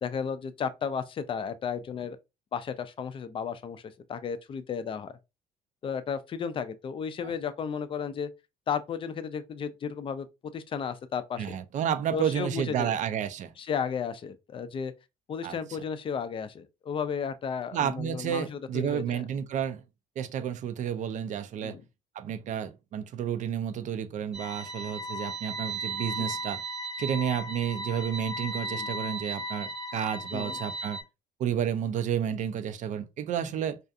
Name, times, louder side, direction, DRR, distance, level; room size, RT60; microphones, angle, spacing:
voice 1, 0.0-2.2 2.5-5.1 5.8-8.3 8.7-10.3 10.5-11.6 12.1-13.0 13.6-14.9 15.3-19.2 21.6-21.8 28.7-28.9 30.3-30.6, left 6 dB, 30° left, 0.3 m, -34 dB
voice 2, 11.4-13.5 15.4-15.6 17.7-19.8 20.2-21.8 22.2-26.6 27.0-31.0 31.4-33.8, right 9 dB, 45° right, 0.4 m, -31 dB
sound 1, 24.3-31.0, right 1 dB, ahead, 0.8 m, -36 dB
2.4 x 2.3 x 2.5 m
cardioid pair, 110°, 17 cm